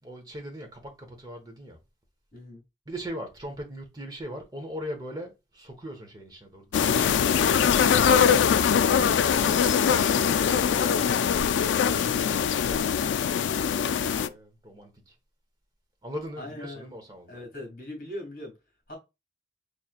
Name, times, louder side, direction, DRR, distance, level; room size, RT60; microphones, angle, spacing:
voice 1, 0.0-1.8 2.9-7.6 8.2-9.6 9.9-13.2 13.7-15.1 16.0-17.4, equal, 20° right, 1.0 m, -40 dB
voice 2, 2.3-2.6 16.4-16.9 17.3-18.6 18.9-19.0, left 1 dB, 50° left, 2.5 m, -41 dB
sound 1, 6.7-14.3, left 7 dB, 85° left, 0.3 m, -22 dB
4.3 x 3.2 x 2.4 m
head